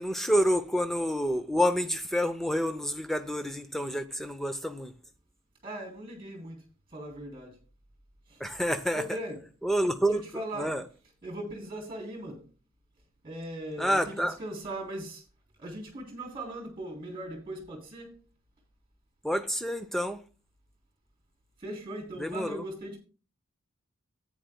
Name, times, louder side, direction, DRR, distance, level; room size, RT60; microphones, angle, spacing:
voice 1, 0.0-4.9 8.4-9.0 9.6-10.2 10.6-10.8 13.8-14.4 19.2-20.2 22.2-22.6, equal, ahead, 0.6 m, -28 dB
voice 2, 5.6-6.6 6.9-7.6 8.3-8.4 8.9-9.4 10.1-10.8 11.2-12.5 13.2-15.2 15.6-18.2 21.6-23.0, right 1 dB, 25° right, 3.4 m, -39 dB
14.0 x 9.1 x 2.2 m
head